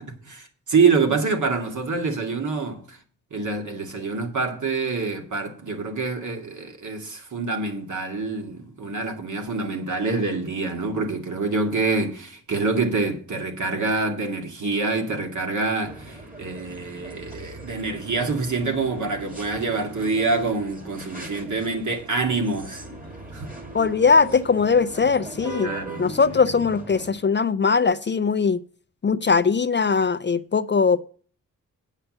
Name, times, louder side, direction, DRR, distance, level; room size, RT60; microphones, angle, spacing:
voice 1, 0.0-3.0 3.3-22.9 23.3-23.5 25.6-26.0, right 4 dB, 65° right, 2.4 m, -26 dB
sound 1, 15.8-27.1, right 2 dB, 25° right, 2.4 m, -40 dB
voice 2, 23.7-25.7 26.0-28.6 29.0-31.0, left 5 dB, 35° left, 0.4 m, -20 dB
9.1 x 5.6 x 7.8 m
wide cardioid pair, 125°, 33 cm